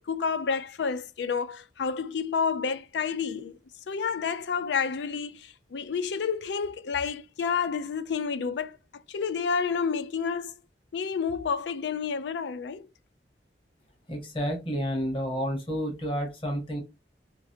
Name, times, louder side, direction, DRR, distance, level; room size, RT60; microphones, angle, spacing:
voice 1, 0.1-3.6 3.9-8.8 9.1-10.5 10.9-12.9, left 6 dB, 75° left, 0.4 m, -29 dB
voice 2, 14.1-16.8, equal, 30° left, 1.1 m, -30 dB
3.1 x 3.0 x 2.7 m
head